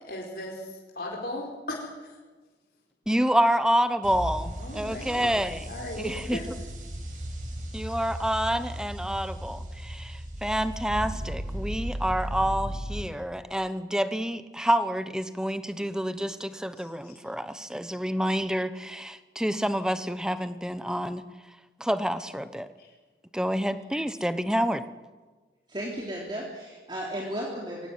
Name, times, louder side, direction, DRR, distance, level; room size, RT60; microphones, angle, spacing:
voice 1, 0.0-0.6 0.9-1.9 4.6-5.3 5.7-6.5 16.8-17.1 22.8-22.9, left 1 dB, 55° left, -2 dB, 4.6 m, -37 dB
voice 2, 3.1-6.4 7.7-21.2 21.8-22.7 23.3-24.8, equal, 5° right, 11 dB, 1.0 m, -28 dB
sound 1, 4.0-13.0, equal, 45° right, 6.4 m, -36 dB
voice 3, 25.7-27.9, equal, 25° right, -2 dB, 3.5 m, -34 dB
23.0 x 17.5 x 9.6 m, 1.3 s
head